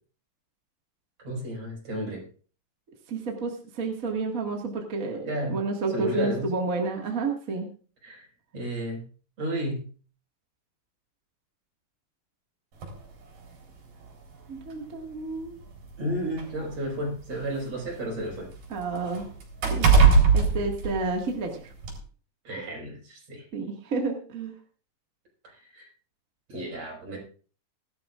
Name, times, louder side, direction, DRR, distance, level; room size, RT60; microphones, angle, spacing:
voice 1, 1.2-2.2 5.3-5.6 5.9-6.5 8.0-8.3 8.5-9.0 9.4-9.9 16.0-18.5 22.4-23.5 25.4-25.9 26.5-27.2, equal, 50° right, -1 dB, 6.2 m, -32 dB
voice 2, 3.1-7.7 14.5-15.5 18.7-19.2 19.7-21.7 23.5-24.5, right 3 dB, 35° right, 1 dB, 1.6 m, -31 dB
sound 1, 12.8-13.0 14.0-14.1 14.6-14.7 15.7-17.6 18.0-21.4 21.8-22.0, right 5 dB, 75° right, 5.3 m, -22 dB
19.5 x 12.0 x 2.5 m, 0.40 s
omnidirectional pair, 3.9 m